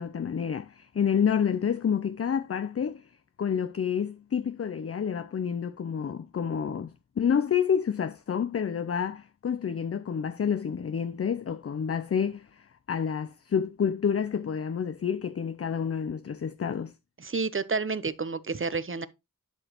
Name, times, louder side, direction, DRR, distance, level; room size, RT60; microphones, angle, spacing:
voice 1, 0.0-3.1 3.4-16.9, left 7 dB, 45° left, 0.4 m, -29 dB
voice 2, 17.2-19.1, right 4 dB, 35° right, 0.6 m, -30 dB
11.5 x 5.0 x 2.9 m
wide cardioid pair, 55°, 35 cm